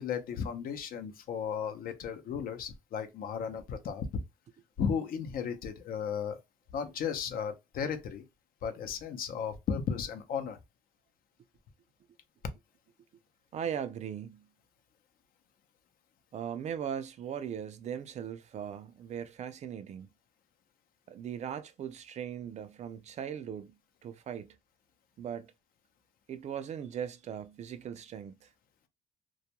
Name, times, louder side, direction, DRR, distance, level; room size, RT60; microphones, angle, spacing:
voice 1, 0.0-4.2 4.8-6.4 6.7-8.2 8.6-10.6, left 7 dB, 60° left, 0.6 m, -35 dB
voice 2, 13.5-14.5 16.3-20.1 21.1-23.7 24.0-24.6 25.2-25.5 26.3-28.5, right 8 dB, 45° right, 0.4 m, -39 dB
2.3 x 2.1 x 2.8 m
cardioid pair, 110°, 17 cm